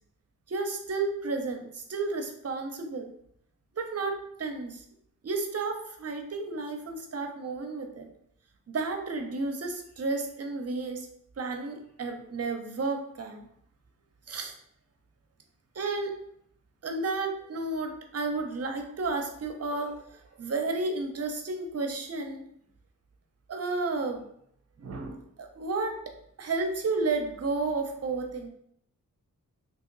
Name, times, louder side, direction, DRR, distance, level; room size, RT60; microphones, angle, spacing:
voice 1, 0.5-3.1 3.7-4.8 5.2-8.1 8.7-11.1 11.4-13.5 14.3-14.5 15.7-16.1 16.8-22.4 23.5-24.2 24.8-26.0 26.4-28.5, right 3 dB, 50° right, 4 dB, 0.7 m, -32 dB
3.0 x 2.8 x 3.8 m, 0.70 s
cardioid pair, 80°, 33 cm